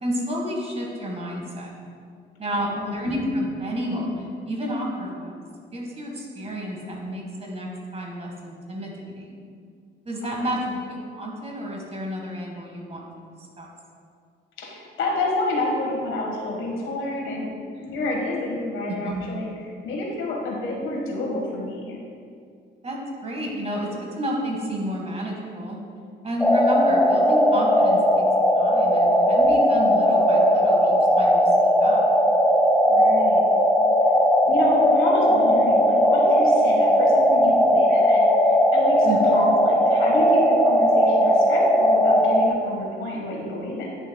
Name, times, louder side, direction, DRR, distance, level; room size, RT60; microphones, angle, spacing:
voice 1, 0.0-1.7 2.4-5.4 5.7-9.4 10.1-10.6 10.9-13.0 13.6-13.7 18.9-19.2 22.8-23.9 24.2-25.8 26.2-28.3 28.5-32.0 39.0-39.2, equal, 30° right, -1 dB, 1.6 m, -30 dB
voice 2, 2.5-3.0 10.2-10.8 14.6-17.5 17.7-22.0 32.9-33.5 34.5-39.1 39.3-44.0, left 2 dB, 85° left, -1 dB, 1.5 m, -29 dB
sound 1, 26.4-42.5, equal, 5° left, 0.5 m, -18 dB
9.9 x 6.2 x 2.3 m, 2.2 s
cardioid pair, 90°, 20 cm